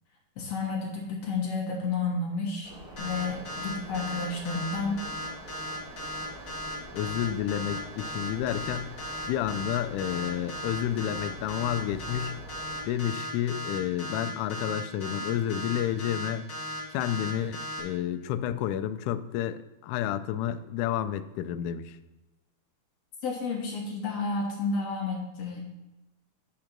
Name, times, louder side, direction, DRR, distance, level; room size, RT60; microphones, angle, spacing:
voice 1, 0.4-2.7 3.0-5.0 23.2-25.6, left 4 dB, 60° left, -1 dB, 1.9 m, -31 dB
sound 1, 2.6-12.8, right 1 dB, 35° right, 1.6 m, -46 dB
sound 2, 3.0-17.8, equal, 40° left, 0.9 m, -36 dB
voice 2, 6.9-8.9 9.2-12.4 12.8-16.5 16.9-22.0, left 11 dB, 85° left, 10 dB, 1.8 m, -30 dB
9.2 x 5.1 x 5.9 m, 1.1 s
omnidirectional pair, 4.0 m